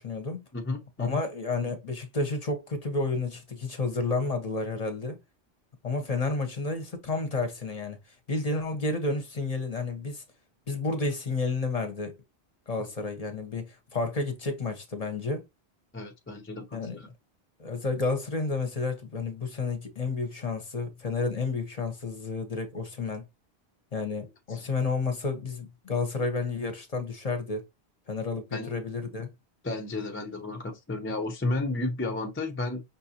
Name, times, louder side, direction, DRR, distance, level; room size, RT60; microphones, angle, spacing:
voice 1, 0.0-0.4 1.0-5.2 5.8-8.0 8.3-10.2 10.7-12.1 12.7-15.4 16.7-17.0 17.6-23.2 23.9-27.7 28.1-29.3, left 3 dB, 40° left, 0.8 m, -31 dB
voice 2, 0.5-1.2 15.9-16.7 16.9-17.1 24.5-24.6 28.5-28.7 29.6-32.8, left 2 dB, 15° left, 0.4 m, -32 dB
5.5 x 2.5 x 2.8 m
omnidirectional pair, 1.1 m